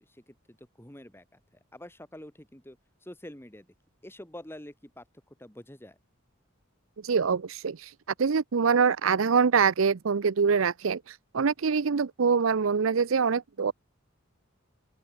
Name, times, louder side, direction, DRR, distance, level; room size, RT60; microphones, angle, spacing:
voice 1, 0.0-3.7 4.0-6.0, left 1 dB, 10° left, 4.1 m, -47 dB
voice 2, 7.0-13.7, right 5 dB, 75° right, 0.6 m, -25 dB
open air
head